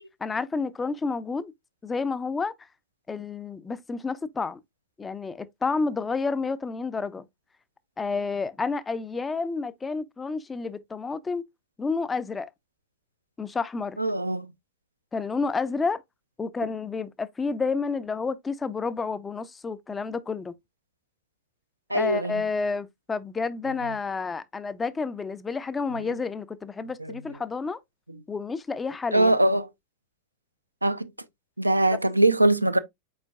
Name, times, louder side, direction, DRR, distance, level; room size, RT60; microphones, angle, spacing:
voice 1, 0.2-1.5 1.8-2.5 3.1-4.6 5.0-7.2 8.0-11.4 11.8-12.5 13.4-14.0 15.1-16.0 16.4-20.5 21.9-27.8 28.3-29.3, left 4 dB, 15° left, 0.4 m, -30 dB
voice 2, 14.0-14.5 21.9-22.4 25.9-26.1 27.0-27.2 29.1-29.7 30.8-31.1 31.6-32.8, right 1 dB, 85° right, 0.3 m, -22 dB
5.4 x 4.4 x 2.2 m
figure-of-eight pair, 90°, 0 cm